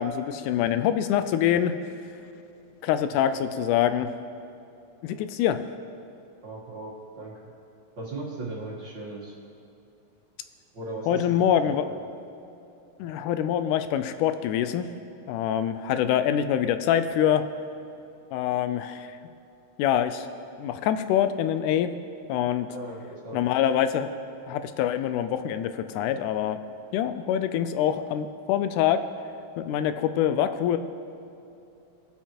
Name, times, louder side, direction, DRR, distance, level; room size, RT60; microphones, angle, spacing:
voice 1, 0.0-1.7 2.8-4.1 5.0-5.6 11.1-11.8 13.0-14.9 15.3-17.4 18.3-19.1 19.8-20.3 20.6-21.9 22.3-22.7 23.3-24.1 24.5-26.6 26.9-29.0 29.6-30.8, left 10 dB, 85° left, 10 dB, 2.0 m, -25 dB
voice 2, 6.4-7.5 8.0-9.3 10.7-12.0 22.7-23.4, right 2 dB, 45° right, -4 dB, 1.7 m, -38 dB
21.0 x 7.4 x 3.0 m, 2.8 s
omnidirectional pair, 3.6 m